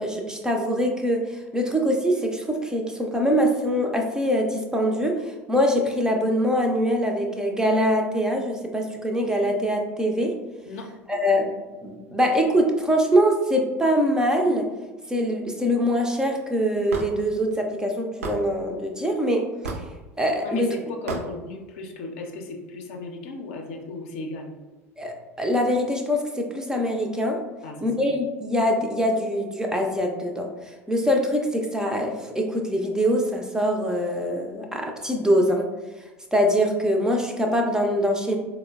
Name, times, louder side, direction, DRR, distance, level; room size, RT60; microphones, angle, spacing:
voice 1, 0.0-10.3 11.1-11.5 11.8-14.7 15.1-19.4 20.2-20.7 25.0-27.4 27.8-30.5 30.9-35.7 36.3-38.4, equal, 10° right, 2 dB, 0.4 m, -23 dB
Hammer / Wood, 16.9-17.1 18.2-18.4 19.6-19.9 21.1-21.3, right 3 dB, 70° right, 0.4 m, -30 dB
voice 2, 20.4-24.5 27.6-28.1, left 3 dB, 60° left, 2 dB, 0.5 m, -36 dB
4.2 x 2.1 x 2.3 m, 1.2 s
figure-of-eight pair, 70°, 8 cm